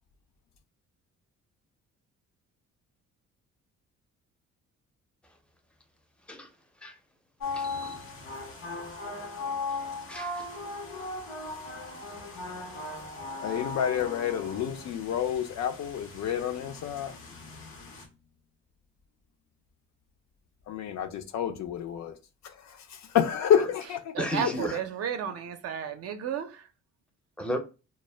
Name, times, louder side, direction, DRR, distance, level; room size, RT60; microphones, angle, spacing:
sound 1, 7.4-18.0, left 3 dB, 85° left, 0.8 m, -38 dB
voice 1, 7.5-8.0 10.1-10.4 24.2-24.8 27.4-27.6, equal, 5° left, 0.5 m, -33 dB
voice 2, 13.4-17.2 17.8-17.9 20.7-22.1 22.4-24.5, left 9 dB, 65° left, 0.5 m, -29 dB
voice 3, 24.1-26.7, right 8 dB, 55° right, 0.5 m, -33 dB
2.1 x 2.1 x 3.2 m
cardioid pair, 90°, 30 cm